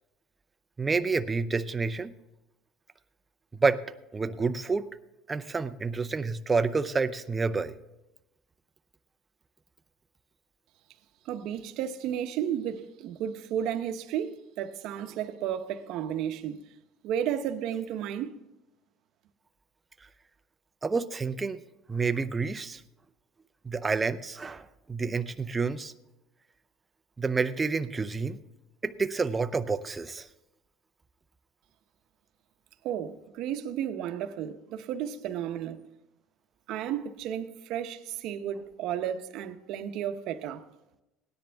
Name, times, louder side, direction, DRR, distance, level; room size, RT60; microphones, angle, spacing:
voice 1, 0.8-2.1 3.6-3.8 4.1-4.9 5.3-7.7 20.8-21.6 21.9-22.8 23.6-25.9 27.2-28.4 28.8-30.3, right 4 dB, 15° right, 0.5 m, -29 dB
voice 2, 11.2-16.7 17.0-18.3 32.8-35.8 36.7-40.6, right 9 dB, 55° right, 0.9 m, -33 dB
18.0 x 10.5 x 3.5 m
cardioid pair, 155°, 0 cm